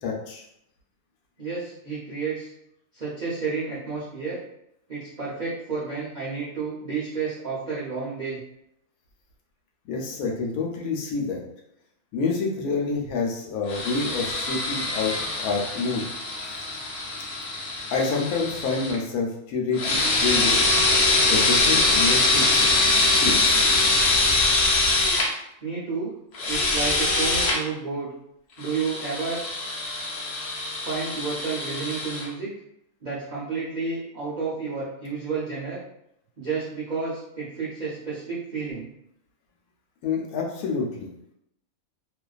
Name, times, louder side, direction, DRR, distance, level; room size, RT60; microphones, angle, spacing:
voice 1, 0.0-0.4 9.9-11.4 12.1-16.0 17.9-20.6 21.3-22.6 23.0-23.6 40.0-41.1, left 4 dB, 80° left, 0 dB, 1.0 m, -28 dB
voice 2, 1.4-2.5 2.9-4.4 4.9-8.4 25.6-26.1 26.5-28.1 28.6-29.4 30.8-32.5 33.0-35.8 36.4-38.9, right 4 dB, 65° right, -9 dB, 0.4 m, -31 dB
sound 1, 13.7-19.0 19.7-25.3 26.3-27.6 28.6-32.3, left 2 dB, 60° left, 0.7 m, -23 dB
2.4 x 2.3 x 2.3 m, 0.78 s
omnidirectional pair, 1.5 m